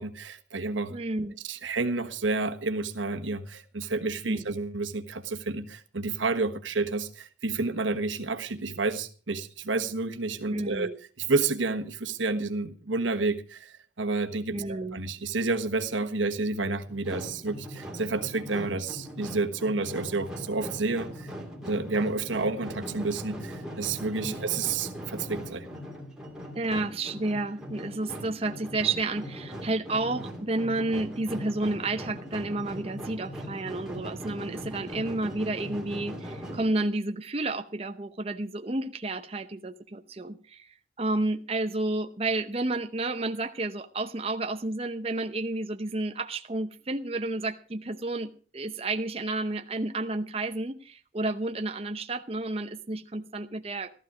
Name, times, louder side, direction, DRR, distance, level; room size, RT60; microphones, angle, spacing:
voice 1, 0.0-1.0 1.4-10.9 11.2-21.3 21.6-25.8, right 3 dB, 90° right, 1.3 m, -30 dB
voice 2, 0.9-1.3 4.2-4.4 10.5-11.0 14.5-15.0 24.2-24.4 26.5-53.9, right 2 dB, 30° right, 0.7 m, -31 dB
sound 1, 16.9-36.8, equal, 5° right, 2.7 m, -40 dB
15.0 x 13.0 x 5.0 m
head